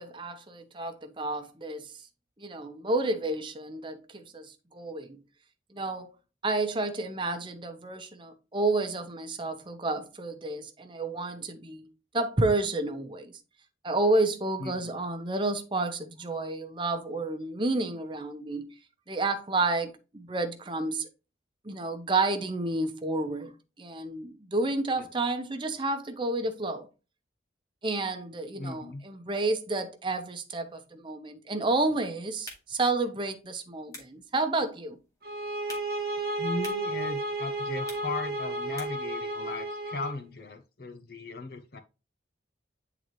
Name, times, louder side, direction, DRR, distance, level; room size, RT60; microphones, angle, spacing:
voice 1, 0.0-1.9 2.4-5.2 5.7-6.1 6.4-13.4 13.8-18.7 19.1-21.1 21.6-23.5 23.8-26.9 27.8-35.0, right 2 dB, 25° right, 0.8 m, -30 dB
voice 2, 14.6-14.9 25.0-25.1 28.5-29.0 36.4-41.8, left 3 dB, 55° left, 0.6 m, -37 dB
sound 1, 32.3-39.2, left 1 dB, 20° left, 1.8 m, -51 dB
sound 2, 35.2-40.2, right 1 dB, 50° right, 0.9 m, -33 dB
9.4 x 3.9 x 3.1 m
head